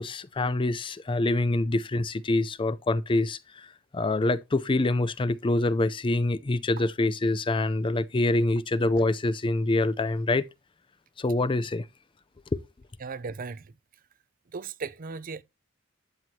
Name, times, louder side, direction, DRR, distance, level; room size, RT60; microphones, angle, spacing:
voice 1, 0.0-3.7 3.9-10.4 11.2-11.8, left 2 dB, 25° left, 0.5 m, -25 dB
voice 2, 13.0-13.7 14.5-15.4, right 4 dB, 45° right, 0.5 m, -36 dB
12.0 x 7.9 x 2.8 m
head